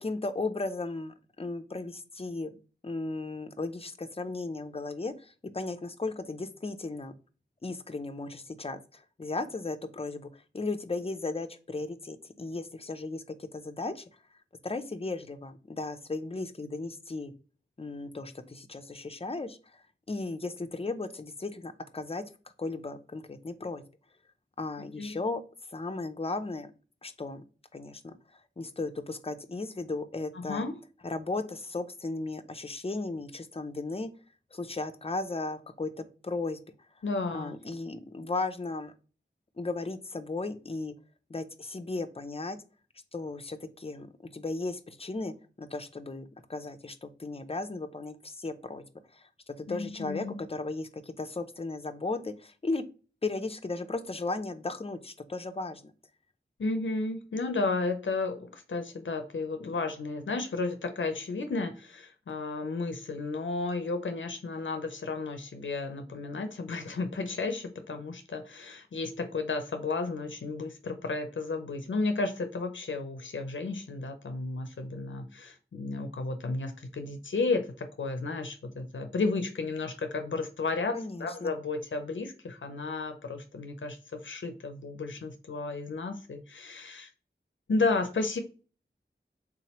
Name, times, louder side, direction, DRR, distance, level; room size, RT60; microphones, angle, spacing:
voice 1, 0.0-2.6 2.8-7.1 7.6-14.0 14.6-17.3 17.8-22.2 22.6-23.8 24.6-25.4 25.7-26.7 27.0-27.4 27.7-30.7 31.0-34.1 34.5-36.6 37.3-38.9 39.6-40.9 41.3-42.6 43.1-44.1 44.3-48.9 49.1-52.8 53.2-55.9 80.9-81.5, left 3 dB, 30° left, 10 dB, 0.5 m, -36 dB
voice 2, 24.8-25.2 30.3-30.7 37.0-37.5 49.7-50.4 56.6-87.1 87.7-88.4, left 3 dB, 85° left, 7 dB, 0.5 m, -33 dB
3.7 x 3.0 x 2.9 m, 0.36 s
wide cardioid pair, 50°, 19 cm